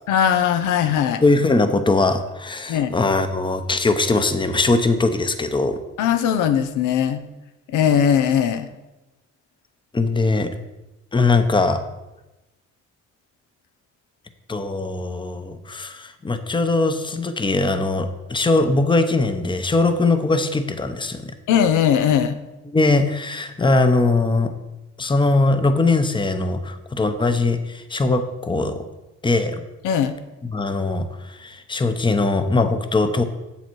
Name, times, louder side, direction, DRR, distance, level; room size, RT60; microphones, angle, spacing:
voice 1, 0.1-1.2 2.7-3.0 6.0-7.2 7.7-8.7 21.5-22.4 29.8-30.1, left 8 dB, 90° left, 9 dB, 0.7 m, -19 dB
voice 2, 1.2-5.8 9.9-10.5 11.1-11.8 14.5-21.3 22.7-24.5 25.0-28.8 29.2-29.6 30.5-33.2, left 3 dB, 15° left, 9 dB, 0.8 m, -20 dB
8.0 x 7.1 x 4.6 m, 1.0 s
cardioid pair, 90°, 30 cm